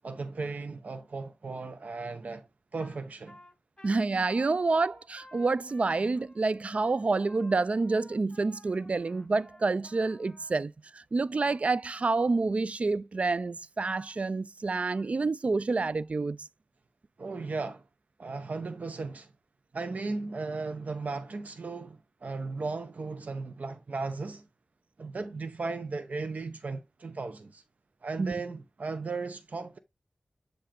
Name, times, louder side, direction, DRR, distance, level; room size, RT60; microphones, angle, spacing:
voice 1, 0.0-2.5 2.7-3.4 17.2-17.8 18.2-19.3 19.7-24.4 25.0-27.6 28.0-29.8, right 3 dB, 75° right, 0.8 m, -36 dB
Trumpet, 2.8-3.0 3.3-10.6, left 1 dB, 30° left, 2.8 m, -55 dB
voice 2, 3.8-16.5 28.2-28.4, right 3 dB, 55° right, 0.3 m, -28 dB
7.7 x 2.6 x 5.0 m
wide cardioid pair, 65°, 3 cm